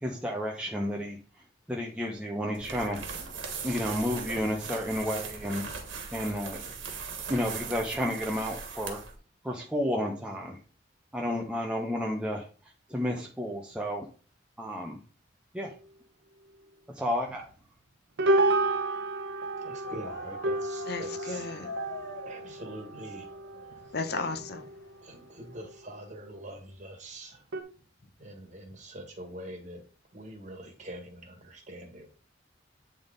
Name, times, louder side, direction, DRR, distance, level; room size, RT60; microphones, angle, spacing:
voice 1, 0.0-1.2 1.7-3.0 3.6-5.6 6.1-6.6 7.3-9.0 9.4-10.6 11.1-14.0 14.6-15.0 15.5-15.7 16.9-17.5, equal, 5° right, 0.7 m, -31 dB
sound 1, 2.5-9.2, right 5 dB, 90° right, 1.4 m, -39 dB
sound 2, 17.3-17.4 18.2-25.0 25.4-25.8 26.3-26.4 27.5-27.6, right 2 dB, 70° right, 0.8 m, -31 dB
voice 2, 19.6-21.5 22.3-23.3 25.0-27.4 28.2-29.8 30.1-32.1, right 1 dB, 40° right, 1.6 m, -44 dB
sound 3, 19.8-25.7, left 3 dB, 90° left, 0.8 m, -45 dB
voice 3, 20.9-21.7 23.9-24.7, left 4 dB, 60° left, 0.8 m, -34 dB
8.7 x 3.6 x 3.9 m
head